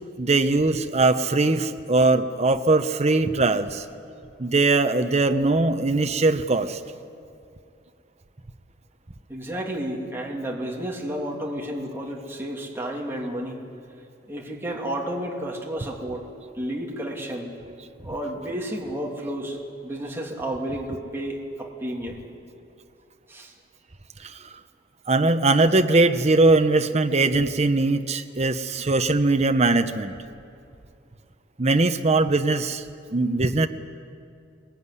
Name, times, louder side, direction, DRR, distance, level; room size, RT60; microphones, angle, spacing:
voice 1, 0.2-3.8 4.4-6.8 24.2-24.3 25.1-30.1 31.6-32.8 33.1-33.7, right 2 dB, 35° right, 7 dB, 0.8 m, -21 dB
voice 2, 9.3-13.6 14.3-16.2 16.5-17.5 18.0-19.6 19.8-22.2 23.3-23.5, right 1 dB, 15° right, -2 dB, 2.8 m, -31 dB
23.5 x 22.0 x 9.8 m, 2.4 s
head